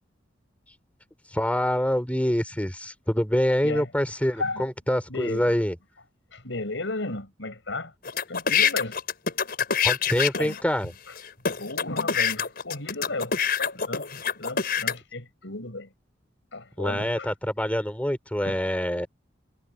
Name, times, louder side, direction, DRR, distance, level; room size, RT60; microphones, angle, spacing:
voice 1, 1.3-5.7 9.8-10.9 16.8-19.1, equal, 10° left, 4.3 m, -25 dB
voice 2, 5.1-5.7 6.3-7.9 8.3-9.0 10.4-10.6 10.8-10.9 11.6-14.1 14.4-15.9 16.5-17.3 18.5-18.6, left 2 dB, 80° left, 5.3 m, -34 dB
sound 1, 8.0-10.6 11.2-11.3 11.4-14.9, left 7 dB, 55° left, 5.2 m, -25 dB
head